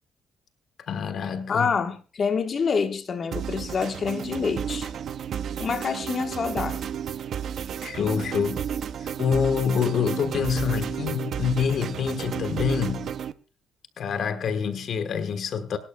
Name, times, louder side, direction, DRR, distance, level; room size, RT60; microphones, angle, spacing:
voice 1, 0.9-1.7 7.8-8.6 9.0-13.1 14.0-15.8, left 6 dB, 65° left, 1.3 m, -26 dB
voice 2, 1.5-4.9 5.6-6.8, left 5 dB, 45° left, 1.3 m, -27 dB
sound 1, 3.3-13.3, right 8 dB, 65° right, 0.7 m, -32 dB
23.0 x 12.0 x 2.3 m
cardioid pair, 90°, 0 cm